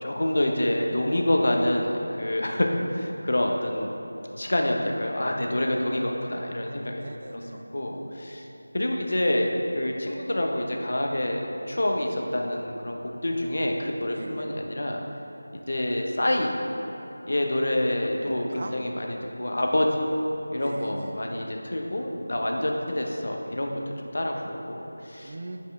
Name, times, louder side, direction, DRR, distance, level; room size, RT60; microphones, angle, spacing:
voice 1, 0.0-3.9 4.4-7.0 7.7-8.4 8.7-9.5 9.7-15.0 15.7-16.5 17.2-19.8 20.5-23.7 24.0-25.3, left 1 dB, 60° left, 1 dB, 0.8 m, -27 dB
voice 2, 7.0-7.7 14.1-14.5 18.5-19.0 20.6-21.3 25.2-25.6, right 2 dB, 40° right, 5 dB, 0.4 m, -40 dB
9.1 x 4.8 x 3.4 m, 3.0 s
figure-of-eight pair, 170°, 0 cm